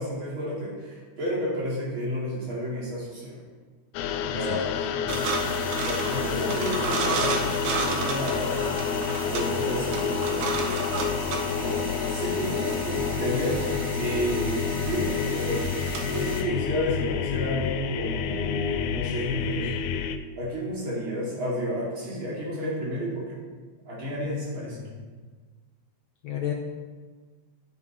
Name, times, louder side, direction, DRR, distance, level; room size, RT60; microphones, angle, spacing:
voice 1, 0.0-3.4 4.3-4.7 5.8-8.8 9.3-10.6 11.5-11.8 12.1-13.6 14.0-15.7 16.0-19.7 20.4-23.4 23.9-24.8, equal, 45° right, -6 dB, 3.3 m, -31 dB
sound 1, 3.9-20.2, left 8 dB, 90° left, 2.0 m, -29 dB
voice 2, 4.3-4.6 24.2-24.4 24.7-24.8 26.2-26.5, left 11 dB, 70° left, 1 dB, 1.2 m, -32 dB
sound 2, 5.1-16.4, right 4 dB, 90° right, 2.4 m, -32 dB
9.5 x 7.2 x 4.7 m, 1.4 s
omnidirectional pair, 3.3 m